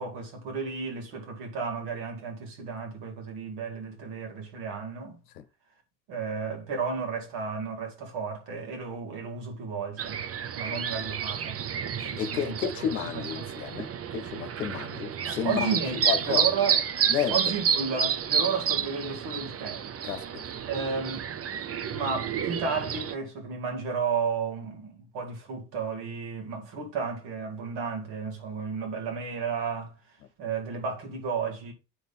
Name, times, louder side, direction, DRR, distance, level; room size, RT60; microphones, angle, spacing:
voice 1, 0.0-5.2 6.1-10.2 10.5-11.6 11.9-12.6 13.0-13.5 15.2-16.8 17.3-19.9 20.7-21.3 21.9-29.9 30.4-31.7, right 5 dB, 70° right, 2.3 m, -33 dB
sound 1, 10.0-23.1, right 8 dB, 30° right, 0.6 m, -30 dB
voice 2, 12.2-13.9 14.1-15.8 16.1-16.4 17.1-17.4 20.0-20.4, left 9 dB, 85° left, 0.8 m, -31 dB
9.3 x 4.0 x 3.5 m
hypercardioid pair, 55°, 45 cm